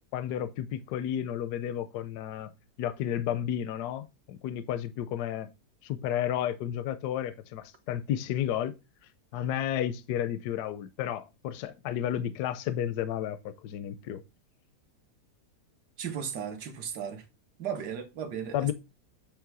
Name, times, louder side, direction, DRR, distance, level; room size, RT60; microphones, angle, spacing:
voice 1, 0.1-2.5 2.8-5.5 5.8-8.7 9.3-14.2 18.5-18.7, left 10 dB, 75° left, 1.1 m, -32 dB
voice 2, 16.0-17.3 17.6-18.7, right 7 dB, 85° right, 1.7 m, -36 dB
8.4 x 3.2 x 6.0 m
omnidirectional pair, 1.8 m